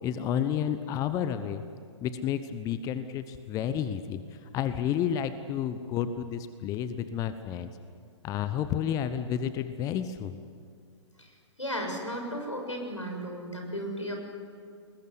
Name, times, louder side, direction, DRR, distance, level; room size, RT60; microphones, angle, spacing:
voice 1, 0.0-1.6 2.0-7.7 8.2-10.4, left 9 dB, 20° left, 11 dB, 1.0 m, -31 dB
voice 2, 11.6-14.1, equal, 90° left, 2 dB, 6.6 m, -34 dB
21.0 x 21.0 x 9.8 m, 2.2 s
figure-of-eight pair, 115°, 15 cm